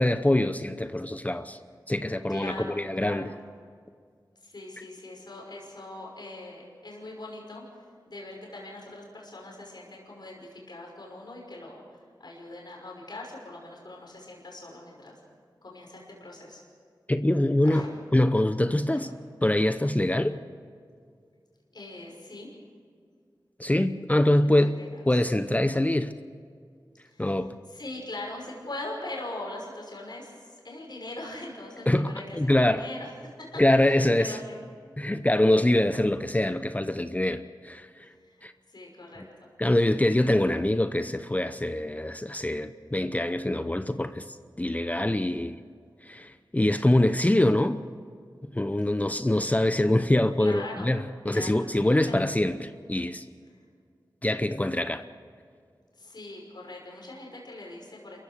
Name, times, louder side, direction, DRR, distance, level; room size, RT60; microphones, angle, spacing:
voice 1, 0.0-1.6 1.9-3.3 17.1-17.8 18.1-19.1 19.4-20.4 23.6-24.8 25.1-26.1 27.2-27.5 31.9-32.9 33.6-34.4 35.0-37.9 38.4-38.5 39.6-44.2 44.6-45.6 46.0-47.8 48.5-53.2 54.2-55.0, left 1 dB, 20° left, 11 dB, 0.7 m, -24 dB
voice 2, 2.3-3.4 4.4-7.8 8.1-11.8 12.2-15.2 15.6-16.6 17.6-17.9 18.9-19.0 21.7-22.5 24.6-25.2 27.1-27.3 27.7-33.1 33.4-34.6 38.0-39.7 50.3-50.9 51.3-52.3 56.0-58.2, left 2 dB, 60° left, -1 dB, 5.9 m, -42 dB
28.5 x 15.5 x 6.6 m, 2.1 s
wide cardioid pair, 55°, 8 cm